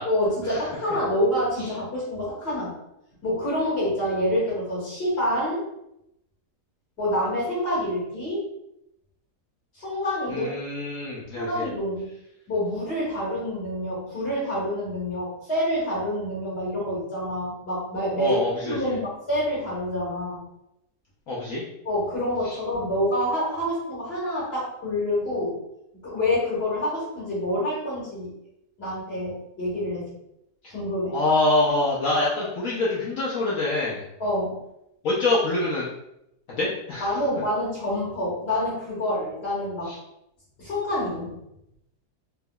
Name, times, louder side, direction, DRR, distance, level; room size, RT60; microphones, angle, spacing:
voice 1, 0.1-2.7 3.2-5.6 7.0-8.4 9.8-10.5 11.4-12.1 12.5-18.4 18.7-20.4 21.9-25.6 26.0-28.3 28.8-30.1 30.7-31.2 34.2-34.6 37.0-39.9 40.6-41.4, left 1 dB, 40° left, -10 dB, 1.8 m, -27 dB
voice 2, 10.3-11.7 18.2-18.9 21.3-21.6 31.1-34.0 35.0-35.9 36.6-37.1 39.9-40.0, left 2 dB, 65° left, -6 dB, 1.0 m, -25 dB
3.4 x 2.9 x 2.2 m, 0.82 s
omnidirectional pair, 1.7 m